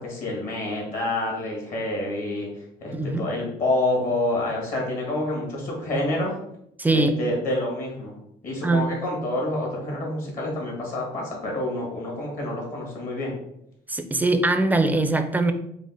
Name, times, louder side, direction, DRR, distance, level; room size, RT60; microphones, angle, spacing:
voice 1, 0.0-2.5 2.8-6.4 6.9-8.2 8.4-13.3, left 1 dB, 55° left, -2 dB, 1.5 m, -28 dB
voice 2, 2.9-3.3 6.8-7.1 8.6-8.9 13.9-15.5, right 2 dB, 10° right, 8 dB, 0.4 m, -22 dB
5.1 x 2.1 x 3.8 m, 0.77 s
cardioid pair, 110°, 17 cm